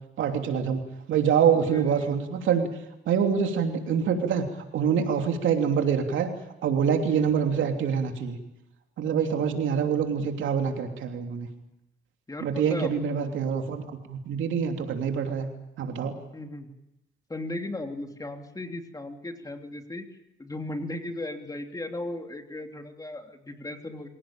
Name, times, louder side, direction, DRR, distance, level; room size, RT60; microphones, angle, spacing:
voice 1, 0.2-0.8 1.1-2.7 3.1-4.5 4.7-6.3 6.6-8.4 9.0-11.5 12.4-15.5 15.8-16.2, right 7 dB, 75° right, 4 dB, 3.1 m, -25 dB
voice 2, 1.6-2.2 7.1-7.3 9.3-9.5 12.3-12.9 13.2-13.5 16.3-16.8 17.3-20.1 20.4-24.1, left 2 dB, 20° left, 4 dB, 3.1 m, -36 dB
25.5 x 17.5 x 9.0 m, 0.92 s
cardioid pair, 90°, 20 cm